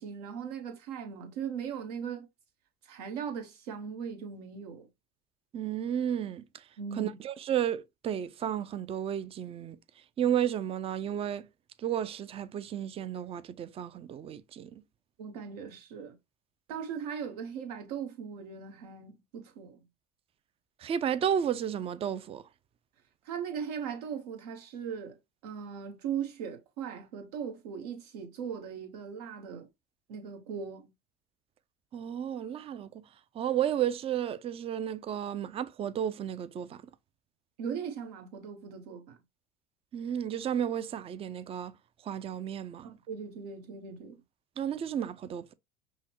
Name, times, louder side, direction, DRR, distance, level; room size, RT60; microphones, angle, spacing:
voice 1, 0.0-2.3 2.8-4.9 6.8-7.1 15.2-16.1 16.7-19.8 23.2-25.2 25.4-29.7 30.1-30.9 37.6-39.2 42.8-44.2, right 7 dB, 80° right, 1.2 m, -39 dB
voice 2, 5.5-6.4 7.0-9.8 10.2-11.5 11.8-14.7 20.8-22.4 31.9-33.0 33.4-36.8 39.9-41.7 42.1-42.9 44.6-45.5, right 9 dB, 30° right, 0.4 m, -32 dB
5.5 x 2.1 x 2.9 m
hypercardioid pair, 85°, 20 cm